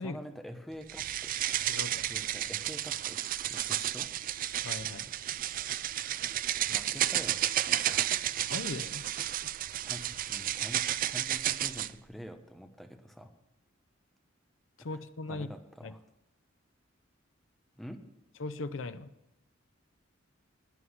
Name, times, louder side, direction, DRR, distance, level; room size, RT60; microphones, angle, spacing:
voice 1, 0.0-1.4 2.0-4.1 6.7-8.3 9.8-13.3 15.3-16.0 17.8-18.0, equal, ahead, 5 dB, 1.1 m, -46 dB
sound 1, 0.9-11.9, right 12 dB, 45° right, 0.3 m, -32 dB
voice 2, 1.7-2.0 4.6-5.3 8.5-9.4 14.8-15.5 15.8-15.9 18.4-19.1, left 3 dB, 80° left, 11 dB, 0.7 m, -39 dB
11.5 x 9.5 x 6.4 m, 0.86 s
head